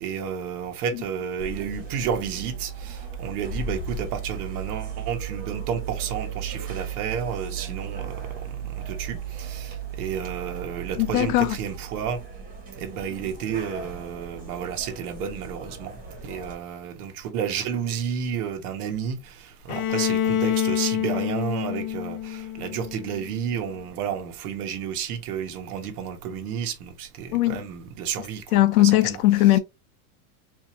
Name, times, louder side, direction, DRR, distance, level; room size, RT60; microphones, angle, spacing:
voice 1, 0.0-8.2 8.9-12.2 12.8-15.9 16.2-28.6 29.0-29.2, right 7 dB, 90° right, 1.3 m, -31 dB
sound 1, 1.4-16.6, right 6 dB, 20° right, 1.4 m, -36 dB
voice 2, 11.0-11.6 27.3-27.7 28.5-29.6, left 16 dB, 80° left, 0.7 m, -19 dB
Bowed string instrument, 19.7-23.5, left 10 dB, 45° left, 0.6 m, -27 dB
4.6 x 2.7 x 2.8 m
supercardioid pair, 155°, 44 cm